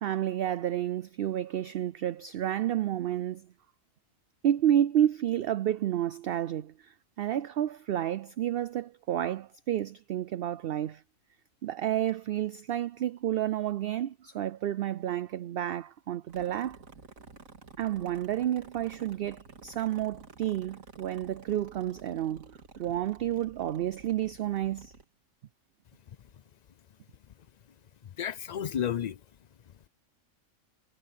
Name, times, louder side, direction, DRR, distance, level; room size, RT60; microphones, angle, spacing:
voice 1, 0.0-3.5 4.4-11.0 11.6-16.8 17.8-24.9, right 11 dB, 65° right, 0.6 m, -30 dB
sound 1, 16.3-25.0, right 4 dB, 85° right, 2.5 m, -52 dB
voice 2, 28.0-29.2, left 9 dB, 80° left, 0.3 m, -32 dB
omnidirectional pair, 1.4 m